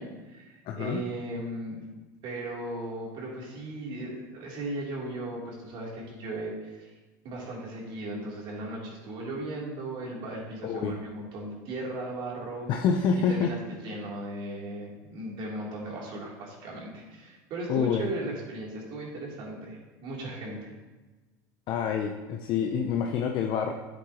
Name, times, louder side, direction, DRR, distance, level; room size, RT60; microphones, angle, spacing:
voice 1, 0.0-1.8 2.2-6.9 7.2-12.7 13.3-20.7, right 1 dB, 55° right, -3 dB, 3.2 m, -37 dB
voice 2, 0.7-1.0 10.6-10.9 12.7-13.5 17.7-18.1 21.7-23.7, left 6 dB, 50° left, 3 dB, 0.7 m, -27 dB
11.0 x 7.9 x 3.0 m, 1.2 s
supercardioid pair, 105°, 10 cm